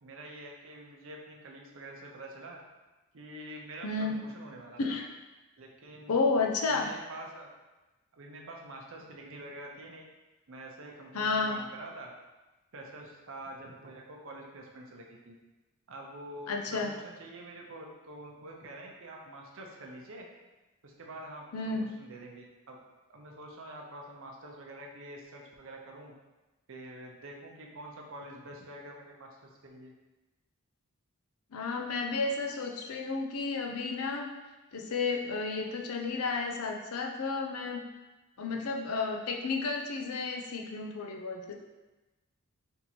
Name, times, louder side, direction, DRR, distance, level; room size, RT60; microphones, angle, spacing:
voice 1, 0.0-2.6 3.1-5.0 5.6-6.2 6.7-7.5 8.1-10.0 10.5-12.1 12.7-15.4 15.9-20.3 20.8-22.8 23.1-26.1 26.7-29.9, right 1 dB, 60° right, 0 dB, 0.7 m, -46 dB
voice 2, 3.8-4.3 4.8-5.1 6.1-6.9 11.1-11.6 16.5-16.9 21.5-22.0 31.5-34.3 34.7-37.8 38.4-41.5, left 4 dB, 75° left, 2 dB, 0.5 m, -32 dB
3.5 x 2.9 x 4.1 m, 1.1 s
head